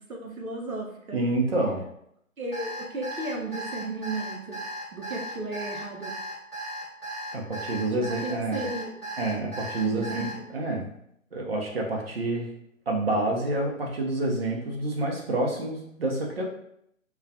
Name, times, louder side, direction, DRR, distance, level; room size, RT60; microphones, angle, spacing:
voice 1, 0.0-1.2 2.4-4.6 4.9-6.1 7.9-9.1 9.8-10.3 10.5-10.8, right 2 dB, 85° right, 0 dB, 0.7 m, -35 dB
voice 2, 1.1-1.8 7.3-8.6 9.2-10.9 11.3-12.5 12.9-16.5, right 2 dB, 45° right, -1 dB, 0.6 m, -28 dB
Alarm, 2.5-10.3, right 1 dB, 20° left, 0.5 m, -36 dB
2.2 x 2.1 x 2.6 m, 0.73 s
figure-of-eight pair, 140°, 41 cm